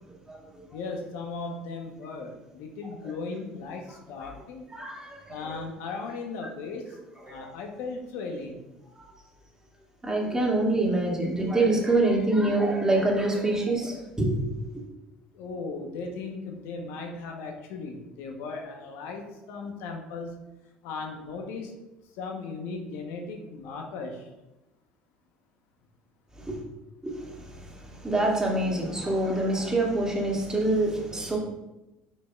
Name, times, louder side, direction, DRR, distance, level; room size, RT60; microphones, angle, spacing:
voice 1, 0.7-4.7 5.3-7.0 7.3-8.6 15.3-20.4 20.8-21.8 22.2-24.3, left 4 dB, 70° left, 2 dB, 1.1 m, -37 dB
voice 2, 4.7-5.6 7.3-7.4 9.0-9.1 10.0-14.4 26.4-26.6 27.0-27.2 28.0-31.4, right 2 dB, 15° right, -3 dB, 2.4 m, -25 dB
9.8 x 5.5 x 2.5 m, 0.99 s
hypercardioid pair, 75°, 4 cm